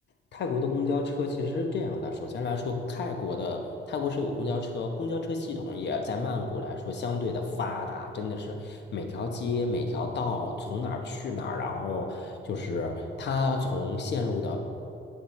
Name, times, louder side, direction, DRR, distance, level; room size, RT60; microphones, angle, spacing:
voice 1, 0.3-14.6, left 3 dB, 60° left, 4 dB, 1.0 m, -31 dB
10.0 x 7.4 x 3.2 m, 2.7 s
cardioid pair, 90°, 20 cm